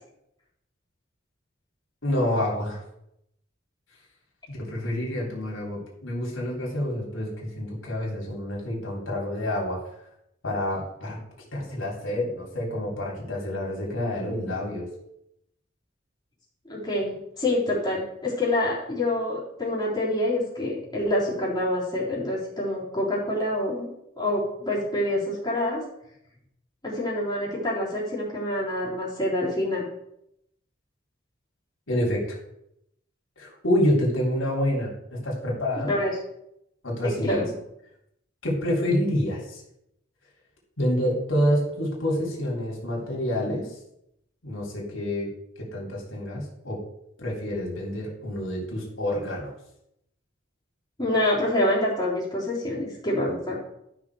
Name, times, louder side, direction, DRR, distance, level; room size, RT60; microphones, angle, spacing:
voice 1, 2.0-2.8 4.5-9.8 10.4-11.2 11.5-14.9 31.9-32.2 33.4-35.9 36.8-37.4 38.4-39.6 40.8-43.7 44.4-45.3 45.6-46.8 47.2-49.5, left 1 dB, 85° left, -3 dB, 3.3 m, -27 dB
voice 2, 16.7-23.9 24.2-25.8 26.8-29.9 35.9-36.1 37.0-37.5 51.0-53.6, left 1 dB, 20° left, -7 dB, 3.6 m, -26 dB
12.5 x 6.1 x 4.8 m, 0.79 s
head